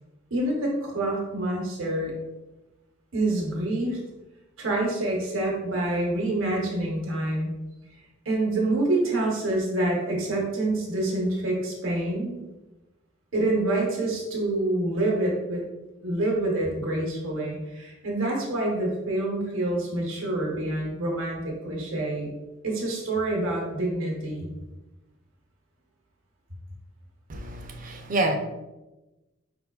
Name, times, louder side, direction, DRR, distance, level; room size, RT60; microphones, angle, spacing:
voice 1, 0.3-2.1 3.1-4.0 4.6-7.5 8.2-12.4 13.3-15.6 16.0-22.3 22.6-24.5, right 2 dB, 75° right, -2 dB, 1.1 m, -27 dB
voice 2, 27.3-28.4, right 2 dB, 40° right, 4 dB, 0.5 m, -27 dB
5.2 x 3.7 x 2.3 m, 1.0 s
head